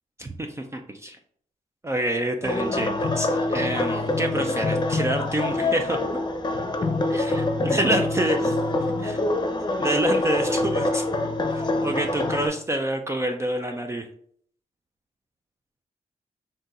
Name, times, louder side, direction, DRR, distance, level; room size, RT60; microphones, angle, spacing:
voice 1, 0.2-1.2 1.8-6.0 7.1-8.6 9.0-9.2 9.8-11.0 11.5-14.1, right 1 dB, 20° right, 4 dB, 0.4 m, -27 dB
sound 1, 2.4-12.5, left 2 dB, 30° left, 0.7 m, -25 dB
3.7 x 2.7 x 4.0 m, 0.62 s
cardioid pair, 85°, 15 cm